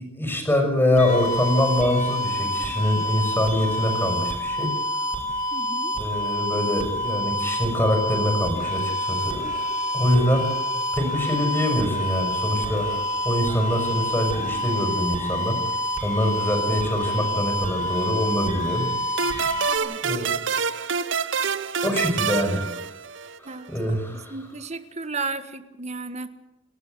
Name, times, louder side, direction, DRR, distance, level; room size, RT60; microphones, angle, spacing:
voice 1, 0.0-4.7 5.9-9.4 9.9-10.5 10.9-15.6 16.0-18.9 19.2-19.3 20.0-20.4 21.8-22.8 23.7-24.3, left 1 dB, 10° left, 4 dB, 6.3 m, -24 dB
sound 1, 1.0-19.8, equal, 40° left, 5.5 m, -27 dB
voice 2, 5.5-5.9 19.7-20.2 23.4-26.3, right 3 dB, 35° right, 10 dB, 1.6 m, -34 dB
sound 2, 19.2-23.5, right 6 dB, 65° right, 0.8 m, -27 dB
30.0 x 13.0 x 8.3 m, 0.95 s
head